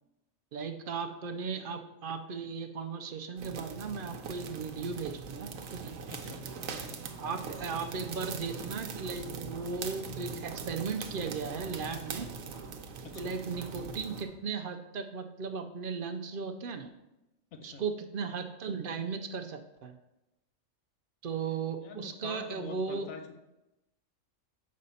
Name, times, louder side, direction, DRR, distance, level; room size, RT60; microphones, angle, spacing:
voice 1, 0.5-5.9 7.2-12.3 13.1-16.9 17.6-20.0 21.2-23.1, right 5 dB, 60° right, 6 dB, 0.5 m, -36 dB
sound 1, 3.4-14.3, right 5 dB, 80° right, 1.1 m, -41 dB
voice 2, 6.1-7.0 13.0-13.4 17.5-17.8 21.8-23.4, left 5 dB, 85° left, 5 dB, 1.1 m, -46 dB
sound 2, 6.5-14.3, right 3 dB, 35° right, 0.9 m, -55 dB
6.5 x 5.2 x 4.1 m, 0.95 s
omnidirectional pair, 1.4 m